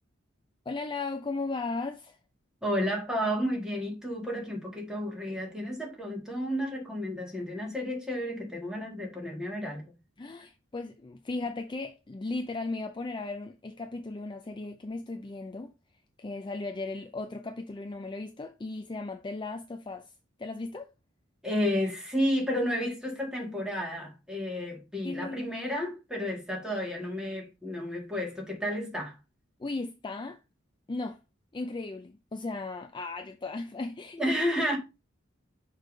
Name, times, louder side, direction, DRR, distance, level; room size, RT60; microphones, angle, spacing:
voice 1, 0.7-2.2 10.2-15.7 16.2-20.1 20.4-20.9 25.0-25.5 29.6-30.4 30.9-31.2 31.5-34.4, left 3 dB, 25° left, 0.4 m, -36 dB
voice 2, 2.6-9.9 21.4-29.2 34.1-34.8, equal, 5° right, 1.9 m, -31 dB
6.3 x 3.3 x 5.3 m
head